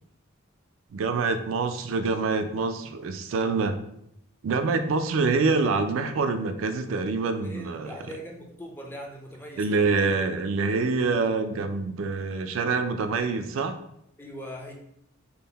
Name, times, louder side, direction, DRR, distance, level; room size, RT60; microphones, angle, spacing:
voice 1, 0.9-3.8 4.4-8.0 9.6-13.8, right 4 dB, 70° right, 8 dB, 0.3 m, -26 dB
voice 2, 7.4-9.9 14.2-14.7, equal, 10° left, 0 dB, 0.5 m, -40 dB
3.7 x 2.1 x 3.9 m, 0.76 s
head